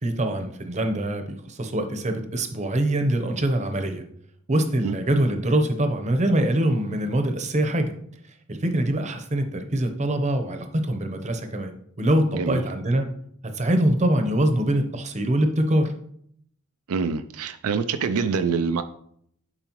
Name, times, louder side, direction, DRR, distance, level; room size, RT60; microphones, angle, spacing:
voice 1, 0.0-4.0 4.5-7.9 8.5-13.1 13.5-15.9, right 1 dB, 35° right, 6 dB, 0.8 m, -24 dB
voice 2, 16.9-18.8, right 5 dB, 75° right, 9 dB, 0.4 m, -25 dB
11.0 x 4.8 x 3.0 m, 0.68 s
head